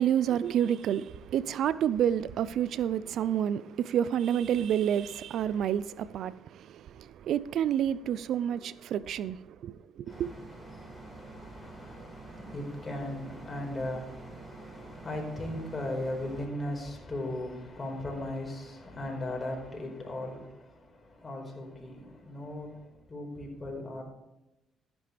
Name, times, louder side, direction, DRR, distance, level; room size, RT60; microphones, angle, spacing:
voice 1, 0.0-10.3, right 10 dB, 70° right, 0.4 m, -29 dB
voice 2, 10.1-24.0, left 1 dB, 30° left, 4.7 m, -38 dB
sound 1, 10.1-16.5, right 3 dB, 45° right, 2.5 m, -48 dB
14.5 x 10.5 x 3.4 m
supercardioid pair, 75°, 0 cm